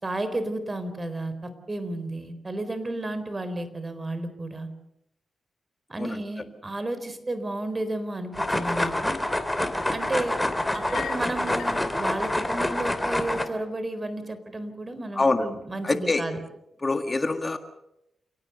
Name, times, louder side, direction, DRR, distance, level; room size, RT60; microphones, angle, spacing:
voice 1, 0.0-4.7 5.9-9.2 9.9-10.4 10.7-16.4, right 2 dB, 30° right, 11 dB, 4.0 m, -32 dB
sound 1, 8.3-13.5, left 1 dB, 15° left, 3.0 m, -27 dB
sound 2, 10.7-11.8, left 8 dB, 90° left, 2.3 m, -39 dB
voice 2, 15.1-15.5 15.8-16.3 16.8-17.6, left 3 dB, 30° left, 8 dB, 1.8 m, -25 dB
29.0 x 18.0 x 6.8 m, 0.84 s
cardioid pair, 65°, 0 cm